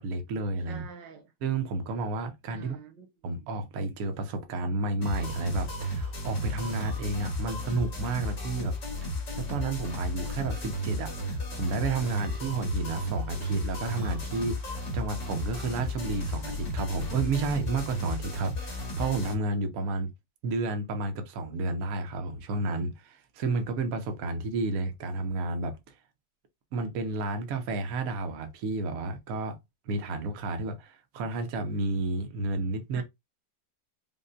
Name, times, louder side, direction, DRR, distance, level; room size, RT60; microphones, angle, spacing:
voice 1, 0.0-0.9 1.4-2.8 3.2-8.7 9.4-20.1 20.4-25.9 26.7-29.6 29.9-33.0, right 3 dB, 60° right, 1.1 m, -31 dB
voice 2, 0.7-1.3 2.5-3.1 32.9-33.0, right 6 dB, 90° right, 1.6 m, -46 dB
sound 1, 5.0-19.3, equal, 90° left, 2.3 m, -34 dB
5.4 x 2.1 x 2.6 m
omnidirectional pair, 1.9 m